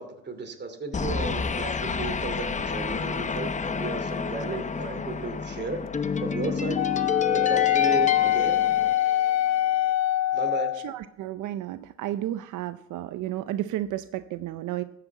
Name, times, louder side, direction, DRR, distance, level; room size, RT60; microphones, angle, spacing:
voice 1, 0.0-5.8 6.2-6.8 7.3-8.6 10.3-10.7, right 4 dB, 35° right, 5 dB, 2.6 m, -34 dB
sound 1, 0.9-9.5, left 5 dB, 25° left, 0.7 m, -30 dB
Wind instrument woodwind instrument, 6.8-10.9, left 13 dB, 60° left, 0.4 m, -23 dB
voice 2, 10.7-14.8, right 13 dB, 80° right, 11 dB, 0.6 m, -32 dB
13.5 x 5.8 x 8.0 m, 0.78 s
cardioid pair, 90°, 30 cm